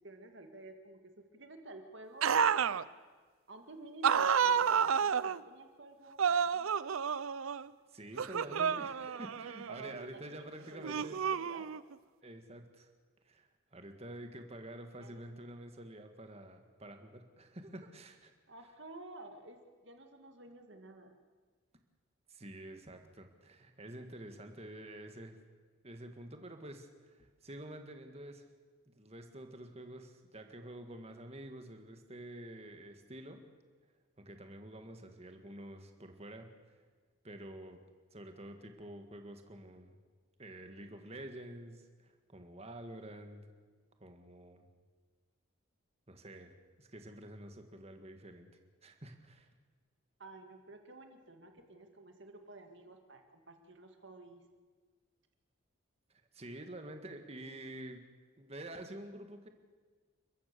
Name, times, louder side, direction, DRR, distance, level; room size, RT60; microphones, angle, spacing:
voice 1, 0.0-2.6 3.5-6.7 9.8-11.8 12.2-12.3 15.0-15.2 18.5-21.1 50.2-54.4, right 2 dB, 60° right, 5 dB, 2.0 m, -51 dB
sound 1, 2.2-2.8 4.0-5.4 6.2-7.7 8.2-9.9 10.8-11.9, right 7 dB, 85° right, 0.5 m, -30 dB
voice 2, 7.9-11.2 12.2-12.9 13.3-18.3 22.3-25.4 25.8-28.5 28.9-33.4 34.2-36.5 37.2-37.8 38.1-39.9 40.4-43.4 44.0-44.6 46.1-46.5 46.8-48.5 48.8-49.5 56.1-58.0 58.4-59.5, right 1 dB, 30° right, 6 dB, 1.8 m, -48 dB
29.5 x 14.5 x 6.9 m, 1.4 s
head